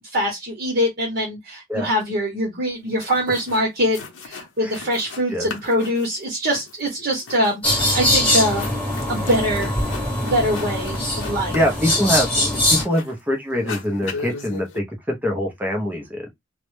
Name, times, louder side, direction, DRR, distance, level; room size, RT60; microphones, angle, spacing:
voice 1, 0.1-8.6 9.1-9.7 10.2-11.6, equal, 55° right, 0.8 m, -23 dB
sound 1, 2.7-2.8 3.0-3.7 3.9-5.2 5.5-13.2 13.5-14.8, left 4 dB, 80° left, 0.6 m, -37 dB
sound 2, 7.6-12.8, left 1 dB, 10° left, 1.0 m, -22 dB
voice 2, 11.5-16.3, equal, 10° right, 0.5 m, -24 dB
2.0 x 2.0 x 3.0 m
head